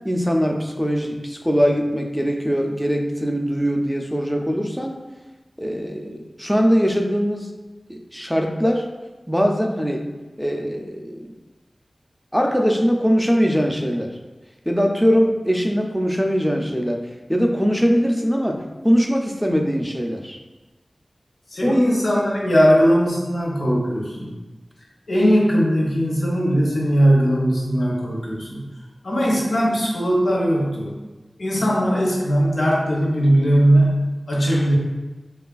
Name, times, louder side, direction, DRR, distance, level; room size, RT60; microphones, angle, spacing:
voice 1, 0.0-5.0 5.6-7.5 7.9-8.9 9.3-10.0 10.4-11.3 12.3-14.1 14.7-17.0 17.3-20.4 21.6-21.8, equal, ahead, 2 dB, 0.3 m, -21 dB
voice 2, 21.5-24.3 25.1-28.7 29.0-30.9 31.4-34.8, equal, 90° left, -5 dB, 0.7 m, -19 dB
3.0 x 2.3 x 2.3 m, 1.2 s
wide cardioid pair, 80°, 0 cm